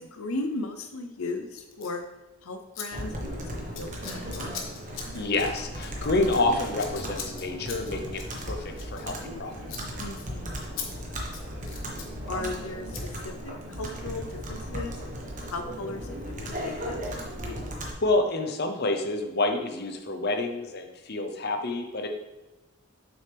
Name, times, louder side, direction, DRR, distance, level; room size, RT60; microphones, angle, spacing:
voice 1, 0.0-2.0 2.4-4.5 6.1-6.3 10.0-11.3 11.7-12.0 12.2-15.2 15.5-17.0, left 2 dB, 80° left, 7 dB, 0.7 m, -37 dB
Scissors, 1.7-2.0 2.7-2.9 3.1-3.4 3.7-9.4 9.7-9.9 10.2-10.3 10.8-10.9 11.2-12.1 12.9-13.1, left 6 dB, 65° left, 1.2 m, -40 dB
Computer keyboard, 2.9-17.9, equal, 35° right, 1.3 m, -36 dB
voice 2, 5.1-9.9 18.0-22.1, left 2 dB, 50° left, 4 dB, 0.8 m, -28 dB
7.6 x 6.2 x 3.4 m, 1.1 s
head